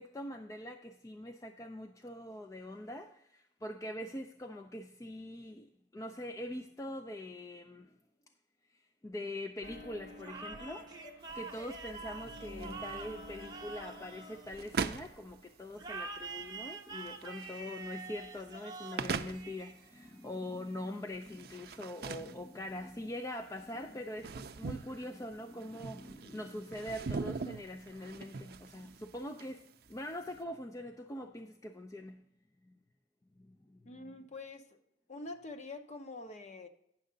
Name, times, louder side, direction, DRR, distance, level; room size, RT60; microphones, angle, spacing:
voice 1, 0.0-8.0 8.7-8.8 9.0-10.9 11.3-32.2 32.6-32.8 33.4-34.1, left 1 dB, 20° left, 0.4 m, -43 dB
sound 1, 9.6-15.3 15.6-16.8, left 1 dB, 90° left, 2.6 m, -52 dB
sound 2, 10.2-15.0 15.8-20.2, right 4 dB, 25° right, 0.9 m, -46 dB
sound 3, 11.2-30.4, right 5 dB, 60° right, 0.4 m, -43 dB
voice 2, 33.8-34.8 35.1-36.7, left 2 dB, 40° left, 0.8 m, -45 dB
9.8 x 6.5 x 3.8 m
head